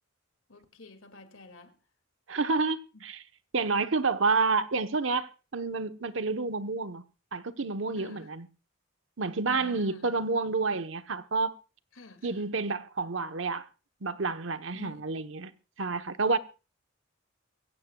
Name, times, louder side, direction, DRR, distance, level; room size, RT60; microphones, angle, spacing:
voice 1, 0.5-1.8 2.9-3.0 8.0-8.3 9.5-10.1 12.0-12.5 14.7-15.2, left 2 dB, 80° left, 2.2 m, -50 dB
voice 2, 2.3-3.2 3.5-7.0 7.3-8.5 9.2-11.6 12.2-13.6 14.0-15.5 15.8-16.4, right 4 dB, 70° right, 1.0 m, -29 dB
23.5 x 15.5 x 2.3 m
head